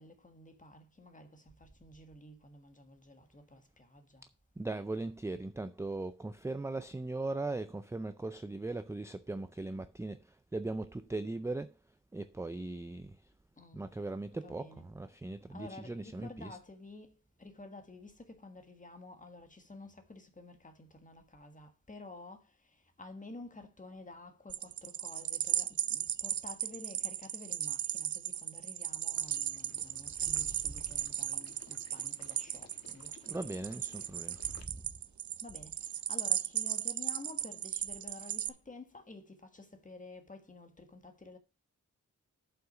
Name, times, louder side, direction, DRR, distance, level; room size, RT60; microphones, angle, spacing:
voice 1, 0.0-4.2 13.6-13.8 14.3-14.8 15.5-33.1 35.4-41.4, left 2 dB, 25° left, 1.7 m, -51 dB
voice 2, 4.6-11.8 12.1-13.2 13.7-16.6 30.5-30.8 33.2-34.8, right 2 dB, 10° right, 0.4 m, -39 dB
sound 1, 24.5-38.5, right 10 dB, 65° right, 0.5 m, -36 dB
Water / Liquid, 29.1-34.6, left 5 dB, 55° left, 1.3 m, -59 dB
7.6 x 5.8 x 6.0 m
wide cardioid pair, 135°, 32 cm